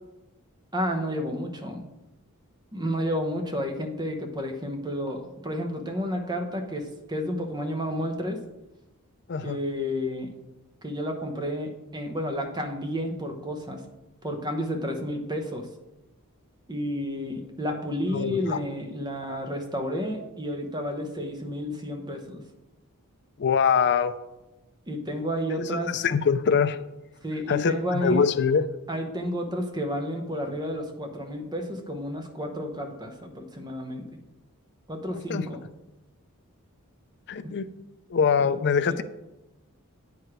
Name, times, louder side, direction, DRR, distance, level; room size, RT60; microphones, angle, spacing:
voice 1, 0.7-1.9 2.7-8.4 9.4-10.3 10.8-13.8 14.2-15.7 16.7-22.4 24.9-25.9 27.2-28.2 28.9-34.2 34.9-35.6 38.4-38.5 38.8-38.9, equal, 20° right, 4 dB, 0.9 m, -31 dB
voice 2, 18.1-18.6 23.4-24.1 25.5-26.8 27.5-28.6 35.3-35.4 37.3-37.7 38.1-39.0, left 6 dB, 50° left, 11 dB, 0.4 m, -23 dB
9.0 x 4.8 x 4.8 m, 1.0 s
head